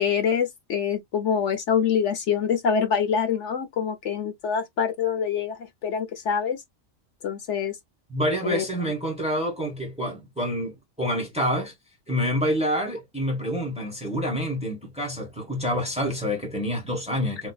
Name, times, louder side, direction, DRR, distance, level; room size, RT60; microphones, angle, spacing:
voice 1, 0.0-6.6 7.2-7.8 8.4-8.9, left 7 dB, 65° left, 1.0 m, -25 dB
voice 2, 8.1-11.7 12.1-17.5, equal, 5° right, 1.2 m, -27 dB
4.4 x 2.5 x 2.3 m
omnidirectional pair, 1.4 m